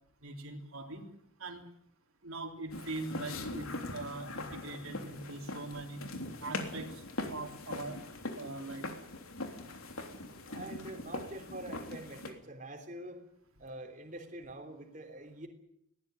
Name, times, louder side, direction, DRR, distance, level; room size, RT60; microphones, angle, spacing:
voice 1, 0.2-1.1 1.4-1.6 2.2-6.0 6.4-7.0 7.3-8.0 8.4-8.9, right 2 dB, 85° right, 3 dB, 3.6 m, -42 dB
sound 1, 2.7-12.3, left 2 dB, 80° left, 3.4 m, -41 dB
voice 2, 10.5-13.2 13.6-15.5, right 1 dB, 35° right, 2 dB, 3.4 m, -45 dB
21.0 x 17.5 x 9.4 m, 0.72 s
head